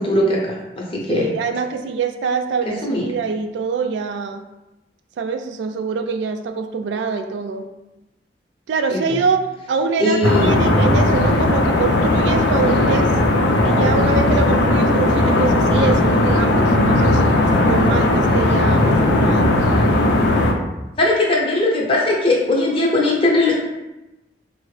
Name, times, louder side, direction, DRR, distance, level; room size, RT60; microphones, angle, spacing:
voice 1, 0.0-1.3 2.8-3.0 8.9-9.2 10.0-10.5 21.0-23.5, left 2 dB, 30° left, -2 dB, 0.6 m, -19 dB
voice 2, 1.1-4.4 5.2-7.7 8.7-13.1 13.6-17.2 17.6-19.6, right 4 dB, 85° right, 6 dB, 0.3 m, -24 dB
sound 1, 10.2-20.5, left 1 dB, 85° left, 0.4 m, -16 dB
3.5 x 2.0 x 3.1 m, 1.0 s
head